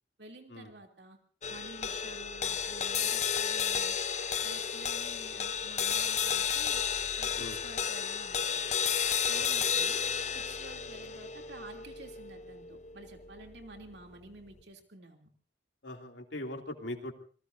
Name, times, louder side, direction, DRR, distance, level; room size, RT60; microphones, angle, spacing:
voice 1, 0.2-1.2 1.5-4.0 4.4-8.8 9.3-10.0 10.3-15.3, right 2 dB, 70° right, 3 dB, 2.9 m, -51 dB
sound 1, 1.4-13.9, left 7 dB, 40° left, 0.7 m, -32 dB
voice 2, 15.8-17.1, left 1 dB, 85° left, 3 dB, 2.7 m, -40 dB
27.0 x 20.0 x 2.7 m, 0.42 s
head